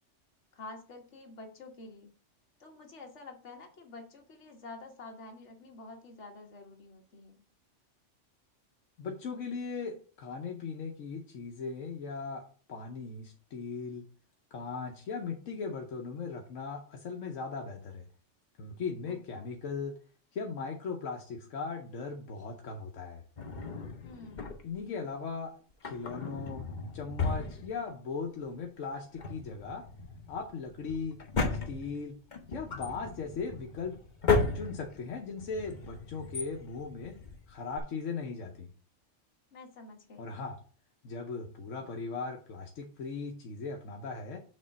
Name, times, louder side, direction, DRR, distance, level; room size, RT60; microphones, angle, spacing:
voice 1, 0.5-2.1 2.6-7.4 19.1-19.5 24.0-24.6 39.5-40.3, left 3 dB, 65° left, 2 dB, 1.7 m, -49 dB
voice 2, 9.0-14.1 14.5-18.1 18.6-20.0 20.3-23.2 24.6-25.6 25.8-26.7 26.9-29.9 30.3-31.2 31.7-32.2 32.5-34.0 34.5-37.2 37.5-38.7 40.2-40.6 41.0-44.4, left 4 dB, 85° left, 2 dB, 1.2 m, -38 dB
Drawer open or close, 23.4-24.9 25.7-28.2 28.5-28.6 29.0-37.8, left 4 dB, 40° left, 1.0 m, -35 dB
6.5 x 3.6 x 5.2 m, 0.40 s
omnidirectional pair, 1.3 m